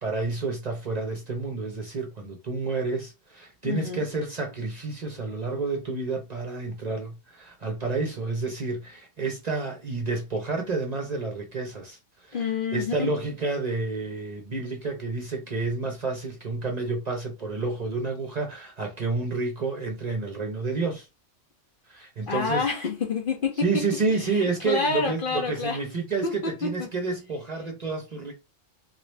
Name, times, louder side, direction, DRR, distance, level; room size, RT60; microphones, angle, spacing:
voice 1, 0.0-12.4 12.7-21.1 21.9-22.7 23.6-28.3, right 3 dB, 40° right, 0.7 m, -30 dB
voice 2, 3.6-4.1 12.3-13.1 22.3-23.8 24.1-25.8 26.2-26.9, left 4 dB, 50° left, 0.8 m, -28 dB
3.0 x 2.5 x 3.2 m
omnidirectional pair, 1.3 m